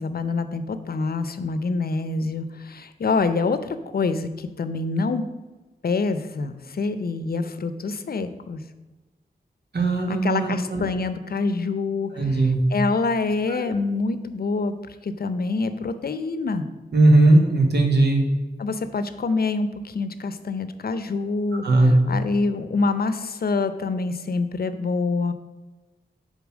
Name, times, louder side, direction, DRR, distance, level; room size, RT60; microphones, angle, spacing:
voice 1, 0.0-5.3 5.8-8.6 10.1-14.7 15.0-16.7 18.6-25.3, left 3 dB, 65° left, 11 dB, 0.6 m, -26 dB
voice 2, 9.7-10.8 12.2-12.6 13.5-13.6 16.9-18.2 21.6-21.9, right 2 dB, 85° right, 1 dB, 1.5 m, -18 dB
7.1 x 4.0 x 6.1 m, 1.2 s
wide cardioid pair, 70°, 17 cm